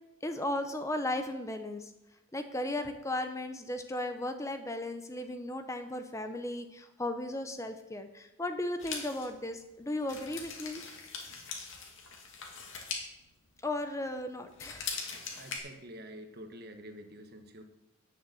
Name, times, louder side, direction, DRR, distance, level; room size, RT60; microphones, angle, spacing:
voice 1, 0.2-1.9 2.3-10.8 13.6-14.9, left 1 dB, 15° left, 7 dB, 0.7 m, -36 dB
sound 1, 8.8-14.1 14.4-15.6, left 5 dB, 65° left, 2.4 m, -41 dB
voice 2, 15.3-17.6, equal, 50° right, 7 dB, 1.3 m, -47 dB
10.0 x 7.0 x 7.7 m, 0.90 s
head